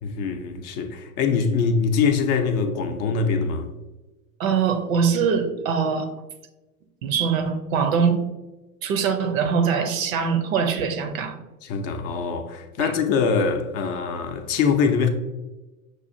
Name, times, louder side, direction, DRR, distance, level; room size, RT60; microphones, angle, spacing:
voice 1, 0.0-3.7 11.6-15.1, left 5 dB, 35° left, 0.5 m, -23 dB
voice 2, 4.4-6.1 7.0-8.2 8.8-11.4 12.8-12.9, right 6 dB, 70° right, 0.7 m, -23 dB
6.2 x 2.4 x 2.6 m
hypercardioid pair, 90°, 42 cm